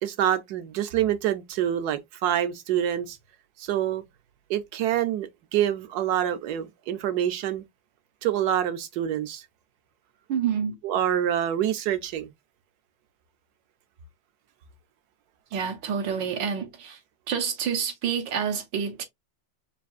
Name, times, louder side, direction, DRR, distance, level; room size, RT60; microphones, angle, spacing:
voice 1, 0.0-3.2 3.6-4.0 4.5-7.7 8.2-9.4 10.8-12.3, right 10 dB, 70° right, 1.1 m, -26 dB
voice 2, 10.3-10.7 15.5-17.0 17.3-19.0, right 7 dB, 90° right, 1.7 m, -28 dB
5.9 x 2.6 x 2.3 m
omnidirectional pair, 1.9 m